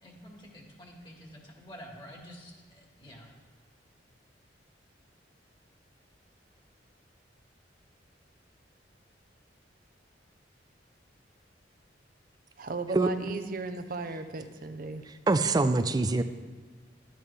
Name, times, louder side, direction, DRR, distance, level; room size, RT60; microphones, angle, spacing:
voice 1, 0.0-3.3, equal, 25° left, -1 dB, 1.8 m, -49 dB
voice 2, 12.6-15.0, right 3 dB, 50° right, 9 dB, 0.7 m, -36 dB
voice 3, 15.3-16.2, right 3 dB, 20° right, 10 dB, 0.4 m, -24 dB
12.5 x 9.0 x 3.3 m, 1.4 s
head